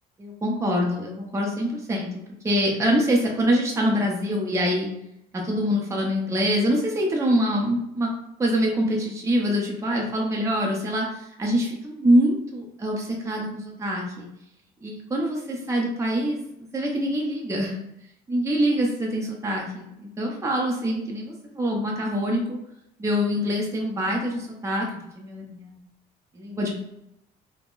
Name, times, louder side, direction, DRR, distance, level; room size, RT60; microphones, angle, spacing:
voice 1, 0.2-2.1 2.4-4.9 5.4-8.1 8.4-11.1 11.4-14.3 14.8-16.4 16.7-17.7 18.3-22.6 23.0-24.9 25.2-25.7 26.4-26.7, equal, 15° right, -1 dB, 0.6 m, -24 dB
3.5 x 2.1 x 2.5 m, 0.82 s
cardioid pair, 110°, 17 cm